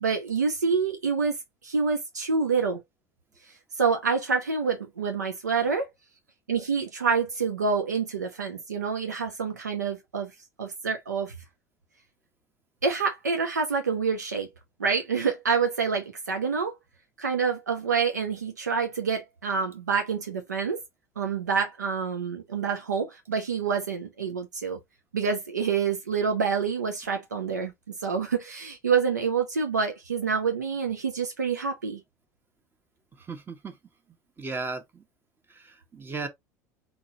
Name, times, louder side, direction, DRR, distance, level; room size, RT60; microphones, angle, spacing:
voice 1, 0.0-1.4 1.6-2.8 3.8-5.9 6.5-10.3 10.6-11.3 12.8-14.5 14.8-16.8 17.2-20.8 21.2-24.8 25.1-32.0, right 5 dB, 85° right, 0.7 m, -27 dB
voice 2, 33.3-33.7 34.4-35.0 35.5-36.3, right 3 dB, 25° right, 1.2 m, -35 dB
4.5 x 3.7 x 2.7 m
figure-of-eight pair, 70°, 9 cm